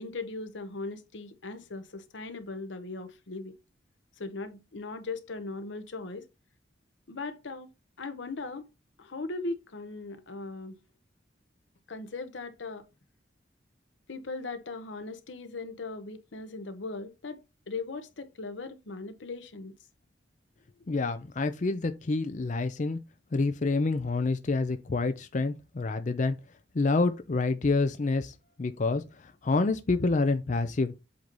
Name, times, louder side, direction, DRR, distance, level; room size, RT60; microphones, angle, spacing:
voice 1, 0.0-3.6 4.2-6.2 7.1-7.7 8.0-8.7 9.0-10.8 11.9-12.8 14.1-19.7, left 3 dB, 85° left, 0.8 m, -39 dB
voice 2, 20.9-23.0 23.3-26.4 26.7-29.0 29.4-30.9, left 3 dB, 40° left, 0.5 m, -27 dB
7.8 x 2.8 x 5.2 m
head